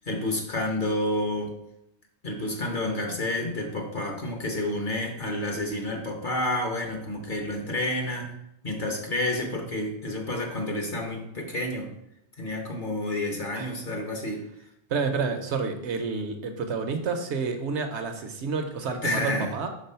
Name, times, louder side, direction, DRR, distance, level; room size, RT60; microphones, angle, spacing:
voice 1, 0.0-1.5 2.2-8.3 8.6-11.9 12.4-14.4 19.0-19.5, left 1 dB, 45° left, 2 dB, 1.0 m, -29 dB
voice 2, 14.9-19.7, right 5 dB, 65° right, 6 dB, 0.9 m, -29 dB
5.3 x 3.5 x 5.5 m, 0.80 s
omnidirectional pair, 1.3 m